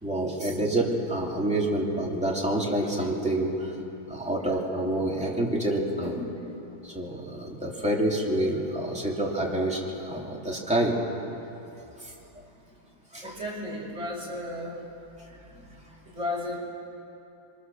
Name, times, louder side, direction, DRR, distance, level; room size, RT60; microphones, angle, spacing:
voice 1, 0.0-3.7 4.1-6.1 6.8-11.0 12.0-12.1 13.1-13.3 15.5-15.8, right 1 dB, 5° right, -3 dB, 3.1 m, -28 dB
voice 2, 13.2-14.8 16.1-16.6, left 1 dB, 35° right, -3 dB, 5.6 m, -34 dB
26.5 x 24.0 x 7.2 m, 2.9 s
omnidirectional pair, 2.1 m